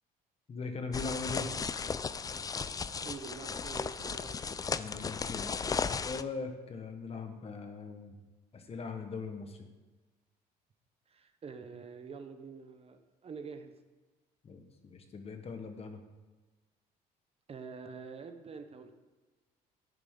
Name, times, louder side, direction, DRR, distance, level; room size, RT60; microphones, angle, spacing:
voice 1, 0.5-1.5 4.8-5.5 6.0-8.2 8.5-9.6 14.4-16.0, left 4 dB, 40° left, 6 dB, 1.3 m, -40 dB
sound 1, 0.9-6.2, left 5 dB, 20° left, 0.4 m, -35 dB
voice 2, 3.0-4.4 11.1-13.7 17.5-18.9, right 5 dB, 35° right, 8 dB, 0.9 m, -46 dB
11.0 x 8.7 x 3.8 m, 1.2 s
cardioid pair, 100°, 17 cm